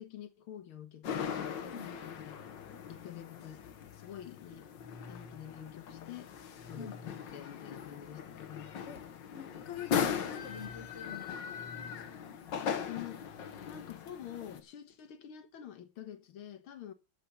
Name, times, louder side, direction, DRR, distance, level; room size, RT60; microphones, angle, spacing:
voice 1, 0.0-2.4 2.9-3.6 3.9-4.7 5.1-6.3 6.7-8.8 12.6-13.2 13.7-16.9, left 10 dB, 80° left, 2.0 m, -47 dB
sound 1, 1.0-14.6, left 7 dB, 60° left, 1.8 m, -39 dB
voice 2, 1.6-2.0 6.8-7.0 8.9-9.0 9.3-12.4, left 7 dB, 40° left, 1.2 m, -47 dB
14.0 x 5.7 x 8.2 m
omnidirectional pair, 2.3 m